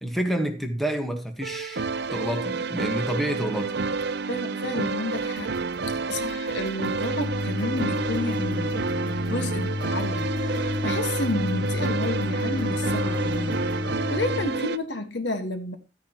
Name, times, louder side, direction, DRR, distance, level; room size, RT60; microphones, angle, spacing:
voice 1, 0.0-1.8 2.1-3.7, right 1 dB, ahead, 1.4 m, -28 dB
sound 1, 1.4-14.8, right 4 dB, 60° right, 0.6 m, -29 dB
voice 2, 4.3-5.5 6.1-13.6 14.1-15.8, left 2 dB, 65° left, 1.5 m, -31 dB
sound 2, 5.1-13.8, left 1 dB, 90° left, 2.8 m, -50 dB
sound 3, 6.9-14.5, left 2 dB, 25° right, 1.5 m, -30 dB
13.0 x 9.6 x 3.0 m
head